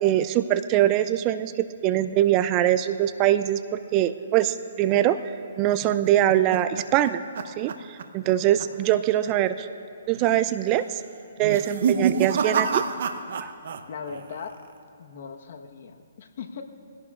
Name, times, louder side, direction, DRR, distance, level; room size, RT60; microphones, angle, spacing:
voice 1, 0.0-5.2 5.6-9.7 10.1-11.0 11.4-12.8 13.4-13.5, right 12 dB, 25° right, 12 dB, 0.4 m, -23 dB
sound 1, 5.8-8.3 8.6-8.9 9.3-9.4 10.1-10.5 11.4-13.8 14.1-14.7, right 6 dB, 60° right, 0.8 m, -28 dB
voice 2, 13.9-14.6 15.0-16.6, left 6 dB, 55° left, 4 dB, 1.2 m, -38 dB
23.0 x 17.0 x 2.5 m, 2.4 s
hypercardioid pair, 150°, 0 cm